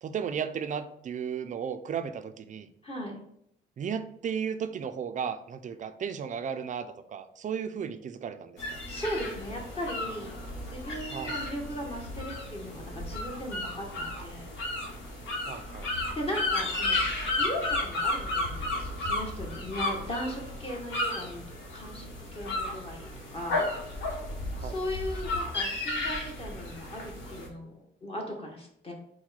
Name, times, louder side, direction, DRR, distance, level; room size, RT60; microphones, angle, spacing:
voice 1, 0.0-2.7 3.8-8.8 11.1-11.4 15.5-15.9 24.6-24.8, right 7 dB, 40° right, 9 dB, 0.4 m, -34 dB
voice 2, 2.8-3.1 8.9-10.3 10.7-14.5 16.1-17.0 17.4-21.4 21.7-23.6 24.6-28.9, equal, 30° left, 0 dB, 1.1 m, -37 dB
sound 1, 8.6-27.5, left 2 dB, 70° left, 1.2 m, -33 dB
4.4 x 2.2 x 4.0 m, 0.73 s
cardioid pair, 90°, 20 cm